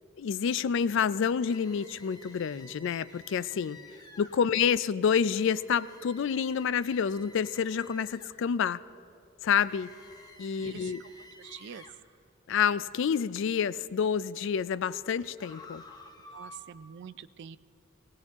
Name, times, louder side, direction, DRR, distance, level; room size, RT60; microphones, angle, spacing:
voice 1, 0.2-3.8 4.2-8.8 9.4-9.9 10.4-11.0 12.5-15.8, left 7 dB, 65° left, 17 dB, 0.3 m, -28 dB
sound 1, 1.4-4.4 5.3-8.4 9.6-12.0 15.4-16.6, left 2 dB, 20° left, 1.1 m, -52 dB
voice 2, 10.6-11.0 11.4-11.8 16.3-17.6, right 7 dB, 60° right, 16 dB, 0.4 m, -45 dB
19.0 x 17.5 x 3.5 m, 2.5 s
head